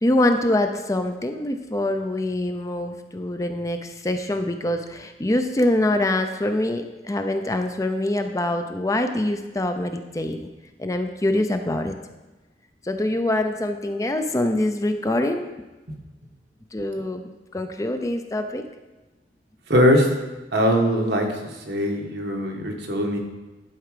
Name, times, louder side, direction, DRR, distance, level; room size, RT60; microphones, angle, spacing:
voice 1, 0.0-10.5 10.8-11.9 12.8-15.5 16.7-18.7, left 1 dB, 20° left, 6 dB, 0.5 m, -24 dB
voice 2, 19.7-20.1 20.5-23.2, equal, 70° right, 2 dB, 1.4 m, -21 dB
11.0 x 4.8 x 4.9 m, 1.1 s
head